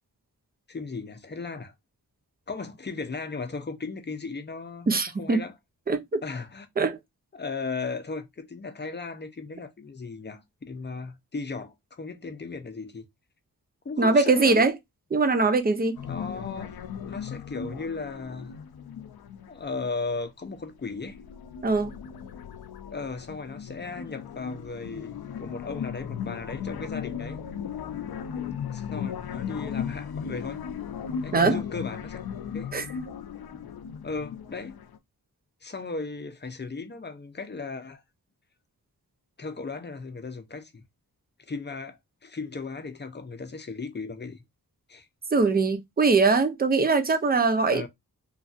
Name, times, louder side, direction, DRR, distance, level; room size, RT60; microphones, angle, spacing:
voice 1, 0.7-1.7 2.5-4.9 5.2-5.5 6.2-6.7 7.3-13.0 13.8-14.7 16.0-16.8 17.0-18.5 19.5-21.2 22.9-27.4 28.7-30.6 31.2-32.2 32.5-32.7 34.0-34.8 35.6-38.0 39.4-40.8 41.4-44.4 44.9-45.1 47.7-47.9, left 4 dB, 30° left, 0.6 m, -36 dB
voice 2, 4.9-5.4 5.9-6.2 6.8-7.0 14.0-14.7 15.1-16.0 21.6-21.9 31.3-31.6 32.7-32.8 45.3-47.9, right 3 dB, 25° right, 0.5 m, -22 dB
sound 1, 15.9-20.2 20.6-35.0, left 8 dB, 80° left, 0.5 m, -37 dB
3.2 x 2.5 x 2.4 m
wide cardioid pair, 90°, 37 cm